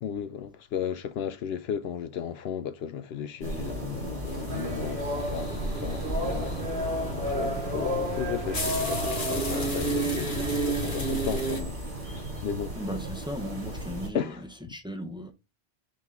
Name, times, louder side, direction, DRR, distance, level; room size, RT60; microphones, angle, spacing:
voice 1, 0.0-12.8 14.1-14.4, left 8 dB, 70° left, 0.8 m, -35 dB
sound 1, 3.4-14.1, right 1 dB, 85° right, 3.2 m, -36 dB
sound 2, 4.3-11.6, left 3 dB, 50° left, 1.4 m, -39 dB
sound 3, 4.5-11.6, right 1 dB, 70° right, 2.0 m, -31 dB
voice 2, 12.8-14.4 14.7-15.3, equal, 5° right, 0.9 m, -36 dB
9.0 x 3.1 x 3.7 m
omnidirectional pair, 1.1 m